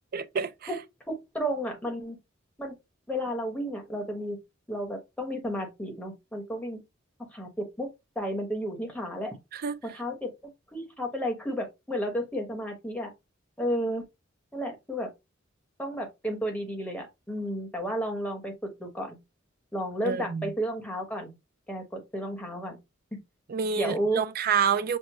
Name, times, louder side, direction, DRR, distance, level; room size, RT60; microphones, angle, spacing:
voice 1, 0.1-0.7 9.5-9.8 20.0-20.5 23.5-25.0, right 6 dB, 50° right, 0.4 m, -28 dB
voice 2, 1.1-2.2 2.6-2.7 3.1-4.4 4.7-6.8 7.3-7.9 8.1-9.4 9.8-10.3 10.7-13.1 13.6-14.0 14.5-15.1 15.8-19.2 19.7-21.3 21.7-22.8 23.8-24.2, equal, 5° left, 1.1 m, -32 dB
6.4 x 2.1 x 3.0 m
head